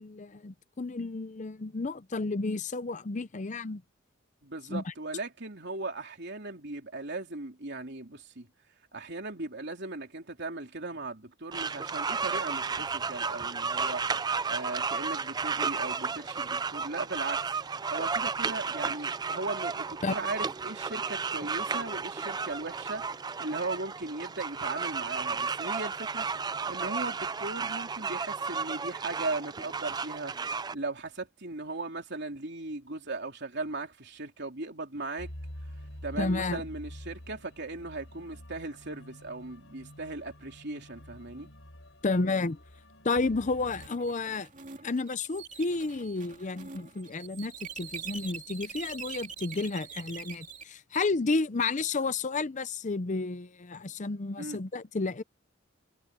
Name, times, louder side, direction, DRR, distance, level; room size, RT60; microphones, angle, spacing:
voice 1, 0.0-3.8 4.7-4.9 20.0-20.1 36.2-36.6 42.0-42.6 43.0-44.5 44.8-55.2, left 3 dB, 35° left, 0.6 m, -31 dB
voice 2, 4.4-8.5 8.9-14.2 14.5-17.4 17.9-35.3 36.0-41.5 54.4-54.6, right 2 dB, 55° right, 3.6 m, -38 dB
sound 1, 11.5-30.7, right 5 dB, 20° right, 0.4 m, -33 dB
sound 2, 35.2-43.9, equal, 70° left, 4.2 m, -47 dB
sound 3, 43.7-50.6, right 6 dB, 40° right, 2.4 m, -44 dB
head